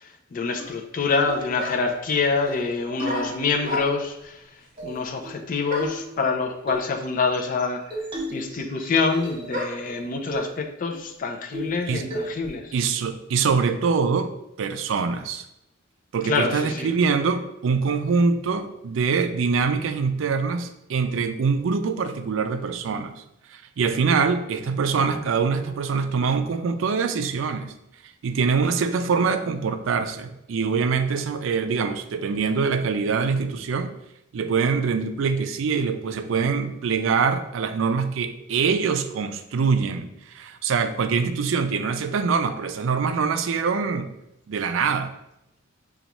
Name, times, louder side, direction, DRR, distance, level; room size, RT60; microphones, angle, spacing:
voice 1, 0.3-4.4 4.8-7.8 8.3-12.7 16.2-16.9, left 4 dB, 45° left, 3 dB, 0.4 m, -26 dB
sound 1, 0.6-0.7 1.3-1.5 1.8-1.9 2.3-2.6 3.0-3.7 4.8-5.4 5.8-6.1 6.7-6.9 7.9-8.5 8.8-9.5 9.8-9.9 10.3-10.5 10.9-11.0 11.5-11.8 12.1-12.5, equal, 30° right, 1.1 m, -34 dB
sound 2, 1.5-2.0 3.0-4.2 5.7-6.1 7.0-7.1 7.3-9.9, left 1 dB, 45° right, 0.8 m, -34 dB
voice 2, 12.7-14.3 14.6-15.4 16.1-23.2 23.5-27.7 28.2-33.9 34.3-44.1 44.5-45.1, right 5 dB, 70° right, 9 dB, 0.4 m, -24 dB
5.1 x 2.3 x 2.9 m, 0.83 s
head